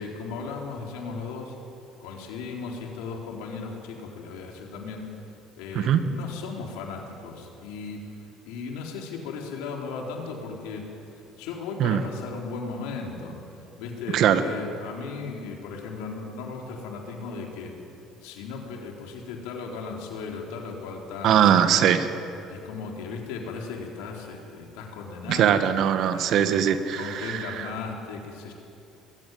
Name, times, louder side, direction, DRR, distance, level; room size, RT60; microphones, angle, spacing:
voice 1, 0.0-1.6 2.0-5.1 5.6-8.0 8.4-10.8 11.4-13.4 13.8-17.7 18.2-21.7 22.5-25.6 26.1-28.5, left 4 dB, 85° left, 0 dB, 3.8 m, -36 dB
voice 2, 21.2-22.1 25.3-27.5, right 9 dB, 65° right, 10 dB, 1.5 m, -21 dB
21.0 x 15.0 x 9.3 m, 2.7 s
supercardioid pair, 90°, 0 cm